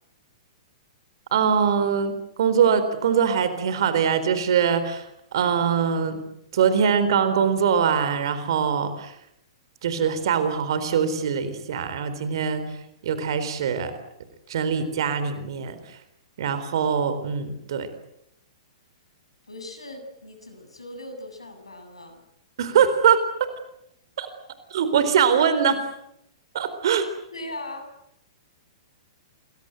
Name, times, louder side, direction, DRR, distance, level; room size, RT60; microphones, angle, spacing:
voice 1, 1.3-5.1 5.3-6.2 6.5-9.1 9.8-12.6 13.0-13.9 14.5-15.8 16.4-17.9 22.6-23.2 24.2-24.3 24.7-25.9 26.5-27.1, right 7 dB, 55° right, 11 dB, 4.0 m, -22 dB
voice 2, 19.5-22.2 27.3-27.9, left 1 dB, 80° left, 7 dB, 7.9 m, -39 dB
28.5 x 22.5 x 8.1 m, 0.78 s
figure-of-eight pair, 110°, 3 cm